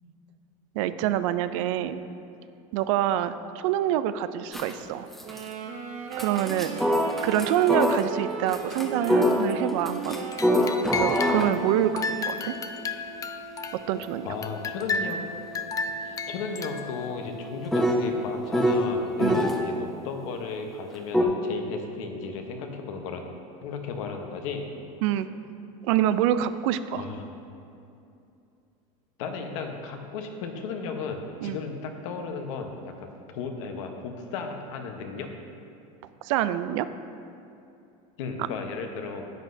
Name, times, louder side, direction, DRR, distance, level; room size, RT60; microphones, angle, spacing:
voice 1, 0.7-2.0 2.7-5.1 6.2-6.8 7.2-10.2 10.9-12.6 13.9-14.3 19.2-19.4 25.0-25.3 25.8-27.0 31.4-31.6 36.2-36.9, right 11 dB, 75° right, 12 dB, 0.4 m, -26 dB
sound 1, 4.5-4.8 5.1-5.5 6.1-8.1 8.5-19.6 21.1-21.2, equal, ahead, 0.7 m, -27 dB
sound 2, 5.2-12.3, right 5 dB, 50° right, 0.7 m, -37 dB
sound 3, 10.1-11.6 12.0-14.0 14.4-17.1, left 4 dB, 20° left, 0.4 m, -33 dB
voice 2, 14.2-15.2 16.0-23.4 23.6-24.7 27.0-27.3 29.2-35.3 38.2-39.3, left 5 dB, 75° left, 4 dB, 1.0 m, -35 dB
10.5 x 7.7 x 2.7 m, 2.7 s
supercardioid pair, 115°, 17 cm